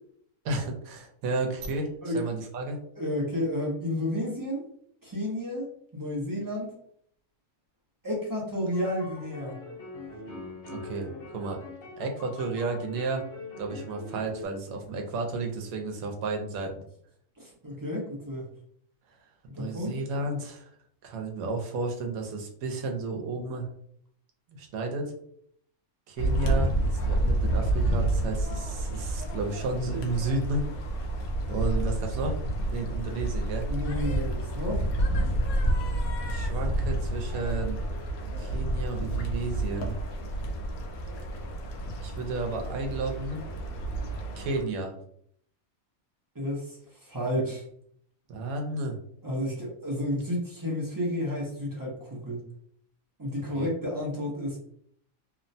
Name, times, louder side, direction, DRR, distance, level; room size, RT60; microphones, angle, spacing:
voice 1, 0.4-1.9 2.1-2.8 10.7-11.6 12.0-13.2 13.6-16.8 19.6-20.7 21.0-23.7 24.6-25.1 26.1-26.7 27.1-30.6 31.5-32.4 32.7-33.6 36.2-37.8 38.4-40.0 42.0-43.4 44.4-44.9 48.3-49.0 53.5-53.7, right 3 dB, 80° right, 2 dB, 1.1 m, -32 dB
voice 2, 3.0-4.6 5.0-5.7 5.9-6.7 8.0-9.6 17.4-18.5 19.5-20.0 33.7-34.8 46.3-47.6 49.2-52.4 53.2-54.6, left 1 dB, 30° right, -4 dB, 0.4 m, -31 dB
sound 1, 8.7-14.4, left 3 dB, 50° left, 0.9 m, -43 dB
sound 2, 26.2-44.6, right 1 dB, 80° left, 1.0 m, -29 dB
2.9 x 2.1 x 2.6 m, 0.66 s
omnidirectional pair, 1.5 m